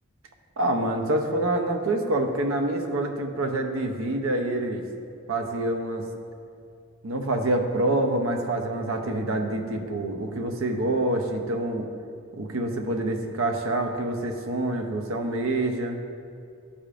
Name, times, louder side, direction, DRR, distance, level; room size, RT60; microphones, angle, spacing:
voice 1, 0.6-4.8 5.3-6.0 7.0-11.9 12.4-16.1, right 1 dB, 70° right, 4 dB, 0.6 m, -26 dB
11.5 x 5.0 x 2.5 m, 2.4 s
head